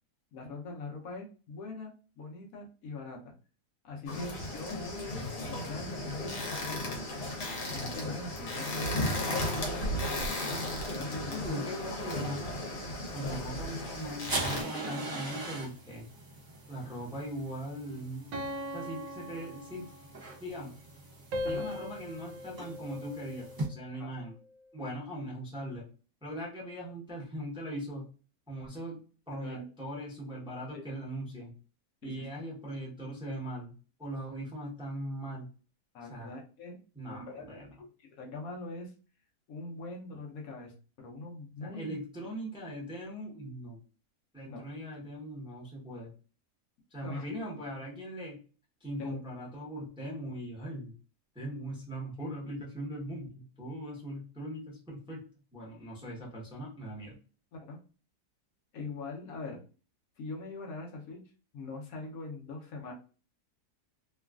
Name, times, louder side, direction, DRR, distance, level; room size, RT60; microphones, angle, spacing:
voice 1, 0.3-3.2 3.8-7.0 7.7-10.2 10.8-11.7 13.2-13.4 21.4-21.7 23.9-24.1 29.4-29.6 30.7-30.8 32.0-32.2 35.9-36.8 37.1-37.4 37.8-38.9 39.5-41.9 44.4-44.6 47.0-47.2 49.0-49.2 57.5-57.8 58.7-59.6 60.2-61.2 61.5-62.9, left 3 dB, 65° left, 0 dB, 1.1 m, -42 dB
sound 1, 4.1-14.6, left 1 dB, 80° left, 1.4 m, -35 dB
voice 2, 11.3-12.5 13.1-16.1 16.7-18.3 18.7-19.9 20.4-20.7 21.4-24.3 24.7-25.8 26.2-28.1 28.5-29.0 29.3-31.5 32.0-33.7 34.0-35.5 36.1-36.3 36.9-37.7 41.6-43.8 44.3-46.1 46.9-48.4 48.8-50.9 51.3-57.2, right 1 dB, 5° right, -4 dB, 0.7 m, -40 dB
sound 2, 13.9-23.7, right 2 dB, 30° right, 0.4 m, -42 dB
sound 3, 18.3-20.3 21.3-23.7, left 1 dB, 70° right, 1.0 m, -39 dB
3.1 x 2.3 x 2.3 m, 0.37 s
omnidirectional pair, 1.7 m